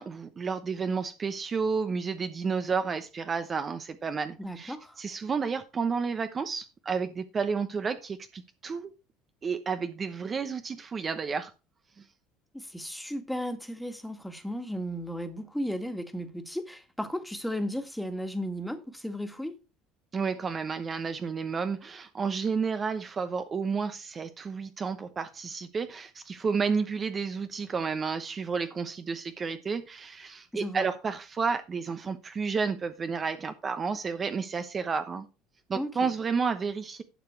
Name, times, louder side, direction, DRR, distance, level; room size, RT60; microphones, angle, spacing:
voice 1, 0.0-8.9 9.4-11.5 12.0-12.1 20.1-35.3 35.7-37.0, right 5 dB, 35° right, 0.9 m, -31 dB
voice 2, 4.4-5.0 12.5-19.6 30.5-30.9 35.7-36.1, equal, 5° left, 1.9 m, -35 dB
11.5 x 6.7 x 4.5 m
supercardioid pair, 85°, 0 cm